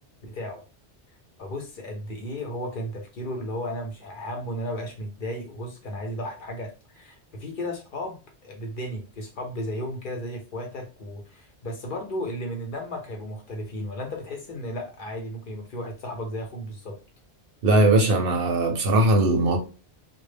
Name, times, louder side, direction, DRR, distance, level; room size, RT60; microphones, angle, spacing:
voice 1, 0.3-0.6 1.4-17.0, equal, 60° left, 0.6 m, -34 dB
voice 2, 17.6-19.6, right 1 dB, 65° right, 0.7 m, -19 dB
2.1 x 2.0 x 3.2 m
omnidirectional pair, 1.1 m